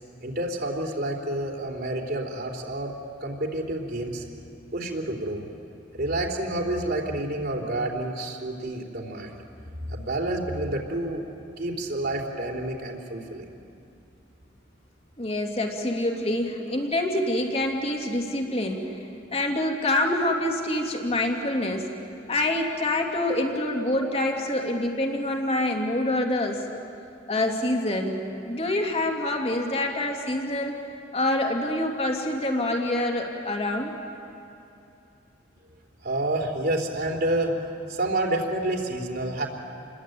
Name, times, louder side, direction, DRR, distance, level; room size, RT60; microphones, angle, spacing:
voice 1, 0.2-2.9 3.2-4.3 4.7-5.5 5.9-9.4 9.9-11.3 11.6-13.5 36.0-39.5, right 1 dB, 55° right, 1 dB, 3.5 m, -29 dB
voice 2, 15.2-19.0 19.3-21.9 22.3-26.8 27.3-30.8 31.1-33.9, left 1 dB, 30° left, 2 dB, 2.8 m, -26 dB
29.0 x 21.5 x 9.3 m, 2.7 s
head